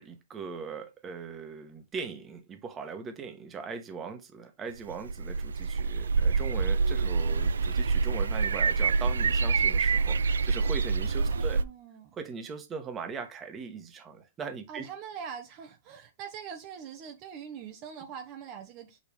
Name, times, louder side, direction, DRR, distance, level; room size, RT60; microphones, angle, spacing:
voice 1, 0.0-11.6 12.1-14.9, right 5 dB, 25° right, 1.4 m, -40 dB
sound 1, 4.9-11.6, right 4 dB, 90° right, 0.4 m, -26 dB
voice 2, 11.3-12.2 14.7-19.0, right 7 dB, 40° right, 1.1 m, -43 dB
5.8 x 5.3 x 3.4 m
hypercardioid pair, 130°, 0 cm